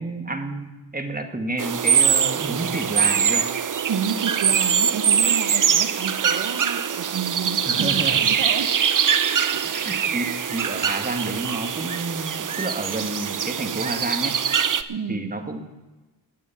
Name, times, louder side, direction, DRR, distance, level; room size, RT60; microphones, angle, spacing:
voice 1, 0.0-3.5 7.7-8.2 9.6-14.4 15.1-15.7, right 2 dB, 20° right, 5 dB, 1.8 m, -30 dB
sound 1, 1.6-14.8, right 8 dB, 45° right, 0.7 m, -23 dB
voice 2, 3.9-8.7 9.2-9.6 14.9-15.2, right 7 dB, 70° right, 6 dB, 1.1 m, -30 dB
15.5 x 9.5 x 5.9 m, 1.1 s
cardioid pair, 65°, 45 cm